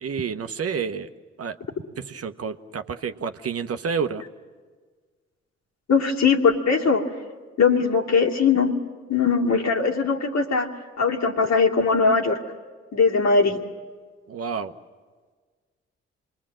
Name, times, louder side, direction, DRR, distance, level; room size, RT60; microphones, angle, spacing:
voice 1, 0.0-1.1 1.4-1.6 2.0-4.2 14.3-14.7, right 6 dB, 50° right, 8 dB, 1.0 m, -29 dB
voice 2, 5.9-7.0 7.6-8.7 9.1-10.7 11.0-12.4 12.9-13.6, left 5 dB, 60° left, 0 dB, 2.6 m, -20 dB
27.0 x 21.0 x 7.6 m, 1.5 s
hypercardioid pair, 40°, 30 cm